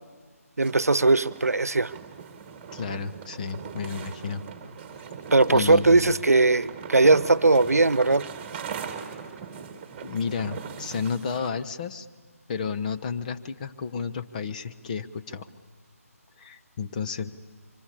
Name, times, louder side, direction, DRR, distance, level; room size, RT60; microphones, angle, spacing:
sound 1, 0.6-11.5, right 6 dB, 20° right, 2.0 m, -40 dB
voice 1, 0.6-1.9 5.3-8.3, right 3 dB, 75° right, 19 dB, 1.0 m, -19 dB
voice 2, 2.7-4.4 5.5-6.2 10.0-12.1 12.5-15.5 16.4-17.3, left 5 dB, 30° left, 9 dB, 1.1 m, -32 dB
27.5 x 25.0 x 8.6 m, 1.5 s
figure-of-eight pair, 150°, 8 cm